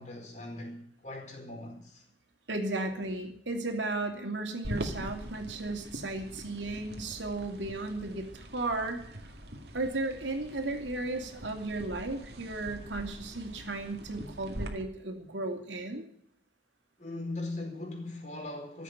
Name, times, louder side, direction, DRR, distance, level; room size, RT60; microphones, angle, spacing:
voice 1, 0.0-2.0 17.0-18.8, left 2 dB, 40° left, 4.5 m, -40 dB
voice 2, 2.5-9.0 9.7-16.1, right 2 dB, 90° right, 2.8 m, -35 dB
sound 1, 4.6-14.7, equal, 60° right, 2.2 m, -43 dB
14.5 x 8.2 x 9.6 m
head